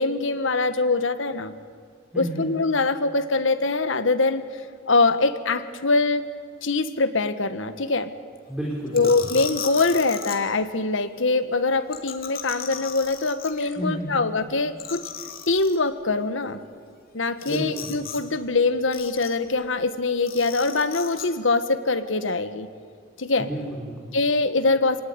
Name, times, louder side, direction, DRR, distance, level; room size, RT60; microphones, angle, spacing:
voice 1, 0.0-1.5 2.2-4.4 4.9-6.3 6.6-8.1 8.9-15.0 15.5-16.6 17.1-22.7 23.2-23.5 24.1-25.0, left 3 dB, 70° left, 11 dB, 1.4 m, -23 dB
voice 2, 2.1-2.5 8.5-9.3 13.8-14.1 17.5-17.9 23.4-24.1, right 1 dB, 5° right, -4 dB, 3.7 m, -31 dB
sound 1, 8.9-10.4 11.9-13.7 14.1-14.2 14.4-14.5 14.8-15.8 17.4-18.2 18.5-19.5 20.3-21.3, left 8 dB, 50° left, 2.6 m, -36 dB
26.0 x 18.0 x 9.8 m, 2.1 s
head